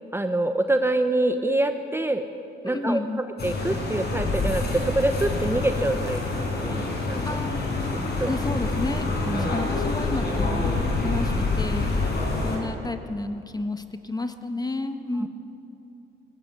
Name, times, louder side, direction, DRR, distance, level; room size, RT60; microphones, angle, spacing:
voice 1, 0.1-2.2 2.6-3.0 3.4-6.2 6.5-7.3 8.2-8.4 9.3-9.5, right 2 dB, 10° right, 7 dB, 0.9 m, -25 dB
voice 2, 2.6-3.2 7.2-7.6 8.3-12.0 12.4-15.3, left 2 dB, 20° left, 8 dB, 1.4 m, -31 dB
sound 1, 3.4-12.6, left 3 dB, 55° left, 5.6 m, -26 dB
18.5 x 17.5 x 8.3 m, 2.7 s
cardioid pair, 90°, 20 cm